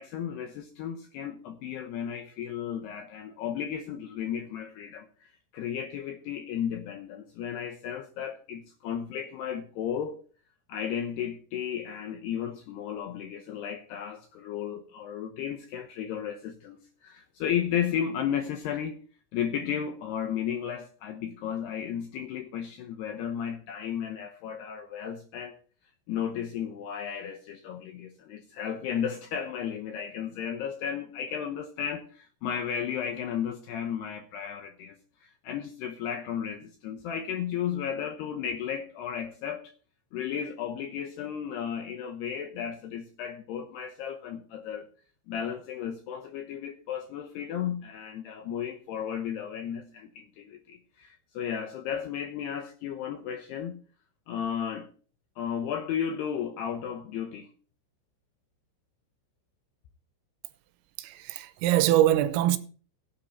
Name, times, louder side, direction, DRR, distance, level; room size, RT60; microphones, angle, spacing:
voice 1, 0.0-10.1 10.7-19.0 19.3-25.6 26.1-39.7 40.1-44.9 45.3-53.8 54.3-54.9 55.4-57.5, left 8 dB, 80° left, 2.4 m, -34 dB
voice 2, 61.0-62.6, right 13 dB, 85° right, 3.6 m, -23 dB
16.0 x 8.9 x 4.1 m
omnidirectional pair, 5.9 m